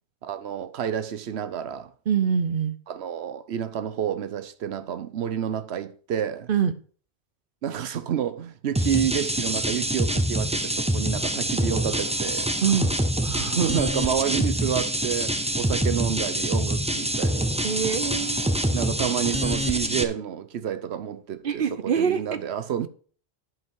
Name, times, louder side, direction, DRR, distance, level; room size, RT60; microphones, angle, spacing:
voice 1, 0.2-1.9 2.9-6.5 7.6-12.5 13.5-17.5 18.7-22.9, right 9 dB, 85° right, 1.0 m, -29 dB
voice 2, 2.1-2.8 6.5-6.7 12.6-12.9 13.2-13.6 17.6-18.9 19.3-19.6 21.4-22.4, right 7 dB, 60° right, 0.9 m, -25 dB
sound 1, 8.8-20.0, right 1 dB, 5° right, 0.6 m, -25 dB
11.0 x 5.4 x 4.7 m
omnidirectional pair, 1.1 m